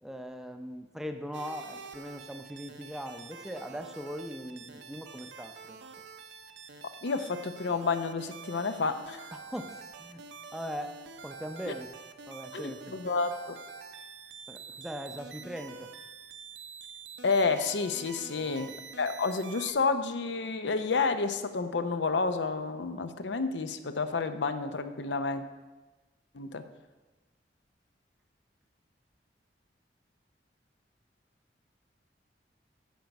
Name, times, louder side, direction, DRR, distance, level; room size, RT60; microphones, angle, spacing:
voice 1, 0.0-5.8 9.3-10.2 10.5-11.0 11.2-11.9 12.3-13.0 14.5-15.9 18.4-18.7, equal, ahead, 6 dB, 0.5 m, -40 dB
sound 1, 1.3-19.7, right 5 dB, 80° right, 0.7 m, -47 dB
voice 2, 7.0-9.2 11.7-11.8 12.5-13.6 17.2-18.7 19.0-25.4 26.3-26.6, left 4 dB, 80° left, 10 dB, 0.6 m, -30 dB
10.5 x 6.7 x 5.2 m, 1.2 s
head